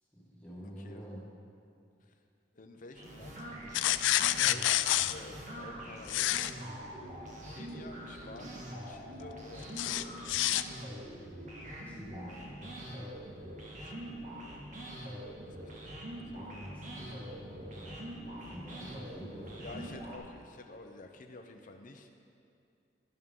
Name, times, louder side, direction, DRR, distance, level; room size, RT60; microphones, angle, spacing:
voice 1, 0.1-1.2 11.8-12.7 16.3-18.0 18.5-19.8, equal, 10° left, -7 dB, 1.8 m, -47 dB
voice 2, 0.6-1.1 2.0-2.1 2.5-4.7 5.0-6.6 7.3-10.5 13.8-14.3 14.8-14.9 15.6-16.0 16.3-16.6 19.6-22.1, left 2 dB, 45° left, 4 dB, 0.7 m, -51 dB
sound 1, 2.9-20.2, right 1 dB, 45° right, 1.8 m, -44 dB
sound 2, 3.7-5.1 6.1-6.5 9.8-10.6, left 14 dB, 80° left, 0.3 m, -28 dB
12.0 x 10.5 x 3.8 m, 2.6 s
head